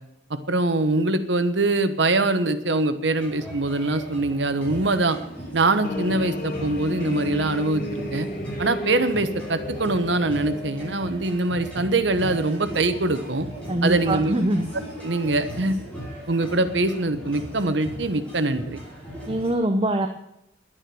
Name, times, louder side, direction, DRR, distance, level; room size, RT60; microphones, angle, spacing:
voice 1, 0.3-5.2 5.5-8.3 8.6-13.5 13.8-14.3 15.0-15.7 16.3-18.8, right 2 dB, 75° right, 10 dB, 1.2 m, -23 dB
sound 1, 3.1-19.5, equal, 5° left, 5.3 m, -38 dB
sound 2, 5.8-11.0, left 2 dB, 50° left, 1.3 m, -32 dB
voice 2, 13.7-14.7 19.3-20.1, right 1 dB, 30° right, 6 dB, 0.8 m, -23 dB
11.5 x 9.9 x 7.7 m, 0.81 s
head